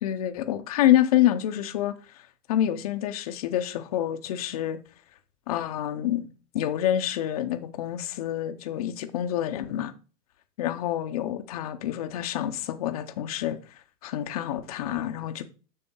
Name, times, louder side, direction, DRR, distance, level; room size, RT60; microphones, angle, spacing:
voice 1, 0.0-2.0 2.5-4.8 5.5-6.3 6.5-9.9 10.6-13.6 14.0-15.4, left 12 dB, 25° left, 0.4 m, -27 dB
6.9 x 6.2 x 3.6 m
hypercardioid pair, 130°, 50 cm